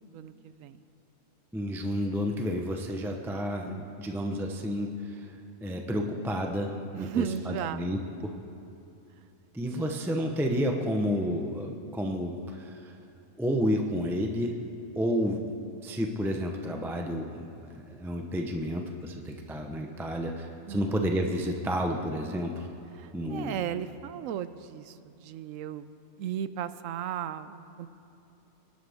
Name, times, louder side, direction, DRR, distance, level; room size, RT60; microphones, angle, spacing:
voice 1, 0.1-0.8 6.9-7.9 9.2-9.3 9.7-10.0 20.6-21.0 23.0-25.9 26.2-27.9, right 9 dB, 75° right, 13 dB, 1.0 m, -36 dB
voice 2, 1.5-5.3 5.6-8.3 9.5-12.9 13.4-14.6 15.0-15.5 15.8-22.7 23.1-23.6, equal, ahead, 2 dB, 0.6 m, -31 dB
23.5 x 11.5 x 3.6 m, 2.8 s
omnidirectional pair, 1.4 m